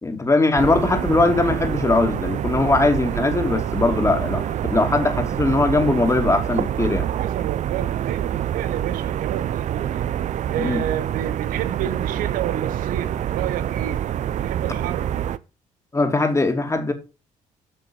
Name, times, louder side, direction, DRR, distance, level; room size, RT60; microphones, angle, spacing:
voice 1, 0.0-7.1 10.6-10.8 15.9-16.9, left 2 dB, 20° left, 2.8 m, -20 dB
sound 1, 0.6-15.4, right 11 dB, 60° right, 0.7 m, -26 dB
voice 2, 7.2-10.1 10.5-14.1 14.4-15.1, right 11 dB, 80° right, 1.2 m, -30 dB
8.3 x 6.3 x 7.1 m
supercardioid pair, 75°, 14 cm